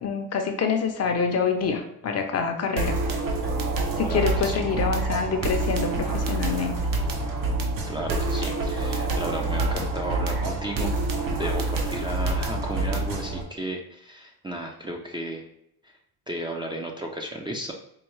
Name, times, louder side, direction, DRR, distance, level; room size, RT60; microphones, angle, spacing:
voice 1, 0.0-3.0 4.0-6.8, left 5 dB, 40° left, 4 dB, 0.6 m, -26 dB
sound 1, 2.8-13.4, right 2 dB, 55° right, 0.8 m, -27 dB
voice 2, 4.0-4.6 7.9-10.9 11.3-15.5 16.3-17.7, right 1 dB, 10° right, 0 dB, 0.5 m, -33 dB
4.5 x 2.3 x 3.1 m, 0.74 s
cardioid pair, 100°, 40 cm